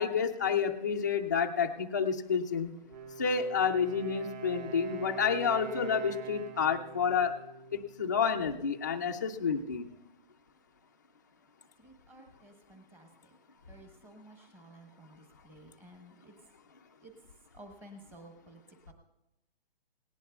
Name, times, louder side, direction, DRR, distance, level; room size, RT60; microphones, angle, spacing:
voice 1, 0.0-2.7 3.2-7.3 7.7-9.9, left 6 dB, 20° left, 2 dB, 0.3 m, -29 dB
Wind instrument woodwind instrument, 2.8-8.5, right 7 dB, 45° right, 2.3 m, -44 dB
voice 2, 11.8-13.1 13.7-16.3 17.0-17.1 17.5-18.6 18.9-19.0, right 1 dB, 5° right, 4 dB, 0.9 m, -53 dB
18.5 x 17.5 x 2.3 m, 0.93 s
hypercardioid pair, 155°, 30 cm